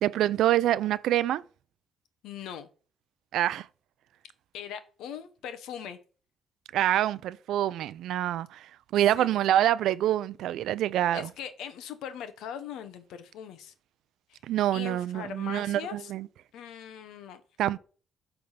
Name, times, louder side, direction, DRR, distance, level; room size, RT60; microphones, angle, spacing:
voice 1, 0.0-1.4 3.3-3.7 6.7-11.3 14.4-16.3 17.6-17.8, right 12 dB, 80° right, 0.4 m, -26 dB
voice 2, 2.2-2.7 4.5-6.0 9.2-9.3 11.1-13.7 14.3-14.4 14.7-16.1 16.5-17.4, left 8 dB, 85° left, 0.9 m, -40 dB
8.7 x 3.5 x 5.5 m
cardioid pair, 90°, 0 cm